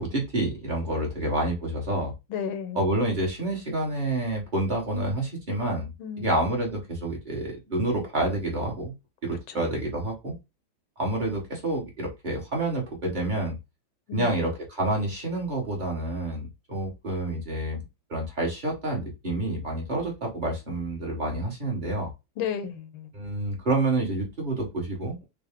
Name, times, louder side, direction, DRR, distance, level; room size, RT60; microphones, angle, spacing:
voice 1, 0.0-2.1 2.7-5.9 6.2-8.9 9.2-10.3 11.0-13.5 14.1-17.8 18.1-22.1 23.1-25.2, right 2 dB, 30° right, 0.9 m, -28 dB
voice 2, 2.3-2.8 6.0-6.3 9.5-9.6 14.1-14.3 22.4-23.1, left 7 dB, 85° left, 1.5 m, -33 dB
4.3 x 2.0 x 3.5 m
omnidirectional pair, 2.1 m